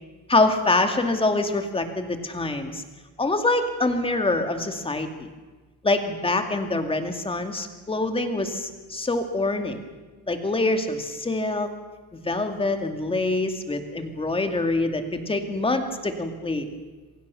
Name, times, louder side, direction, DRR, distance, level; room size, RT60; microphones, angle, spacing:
voice 1, 0.3-2.8 3.2-5.3 5.8-9.8 10.3-11.7 12.1-16.7, left 2 dB, 15° left, 6 dB, 2.4 m, -25 dB
28.0 x 23.5 x 7.0 m, 1.3 s
cardioid pair, 170°, 38 cm